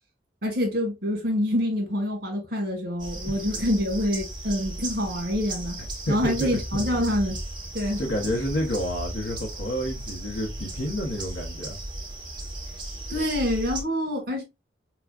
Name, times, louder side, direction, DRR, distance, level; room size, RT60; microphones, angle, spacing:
voice 1, 0.4-5.8 6.1-7.4 7.7-8.0 13.1-14.4, left 1 dB, 50° right, 1.7 m, -26 dB
sound 1, 3.0-13.8, right 1 dB, 25° right, 1.5 m, -36 dB
voice 2, 6.1-6.8 8.0-11.8, equal, 75° left, 1.0 m, -29 dB
5.9 x 2.3 x 2.4 m
head